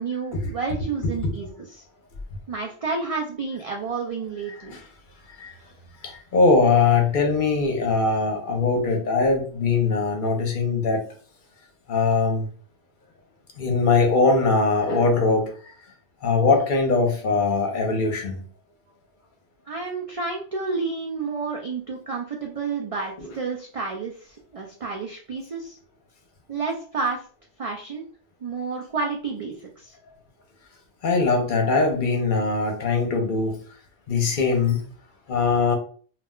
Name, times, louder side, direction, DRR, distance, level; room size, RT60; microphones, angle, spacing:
voice 1, 0.0-1.9 2.5-4.7 19.7-25.8 26.5-27.2 27.6-28.1 28.4-30.0, right 4 dB, 60° right, 1 dB, 0.3 m, -30 dB
voice 2, 6.0-11.0 11.9-12.4 13.6-15.5 16.2-18.4 23.2-23.3 31.0-33.6 34.1-34.8 35.3-35.8, left 4 dB, 55° left, 3 dB, 0.7 m, -21 dB
2.3 x 2.1 x 3.6 m, 0.43 s
omnidirectional pair, 1.1 m